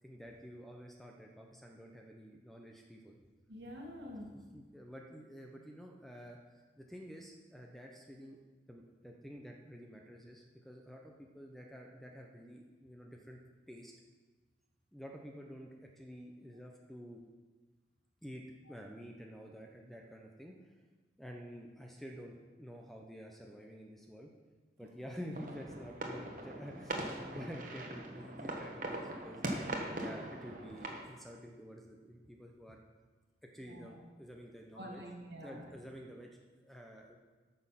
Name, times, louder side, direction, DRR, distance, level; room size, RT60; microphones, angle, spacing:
voice 1, 0.0-3.1 4.5-6.4 6.8-8.4 8.7-13.4 13.7-13.9 14.9-17.2 18.2-18.4 18.7-20.5 21.2-24.3 24.8-32.8 33.5-35.0 35.4-37.2, equal, ahead, 1 dB, 0.7 m, -50 dB
voice 2, 3.5-4.4 26.1-26.2 33.6-34.0 34.7-35.8, equal, 65° right, 1 dB, 1.7 m, -47 dB
sound 1, 25.3-31.0, right 1 dB, 45° right, 1.2 m, -41 dB
9.2 x 6.3 x 5.7 m, 1.3 s
head